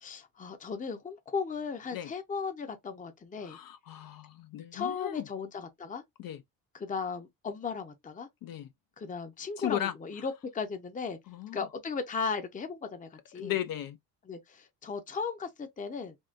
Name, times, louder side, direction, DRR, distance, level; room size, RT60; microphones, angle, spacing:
voice 1, 0.0-3.6 4.7-6.0 6.7-8.3 9.0-11.2 11.5-13.5 14.3-16.2, left 5 dB, 20° left, 0.6 m, -36 dB
voice 2, 3.4-5.3 6.2-6.4 8.4-8.7 9.6-9.9 11.3-11.6 13.3-14.0, left 11 dB, 55° left, 0.5 m, -36 dB
3.6 x 2.2 x 2.4 m
cardioid pair, 85°, 41 cm